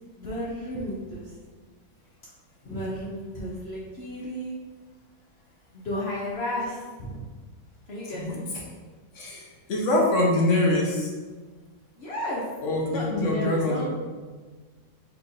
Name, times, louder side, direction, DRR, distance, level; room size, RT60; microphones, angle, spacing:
voice 1, 0.2-1.3 2.6-4.6 5.7-7.3 7.9-8.4 12.0-12.4 12.9-13.9, left 1 dB, 75° left, -6 dB, 0.6 m, -33 dB
voice 2, 9.1-11.1 12.6-13.9, left 1 dB, 50° left, -2 dB, 1.0 m, -24 dB
4.4 x 2.6 x 3.9 m, 1.4 s
omnidirectional pair, 2.0 m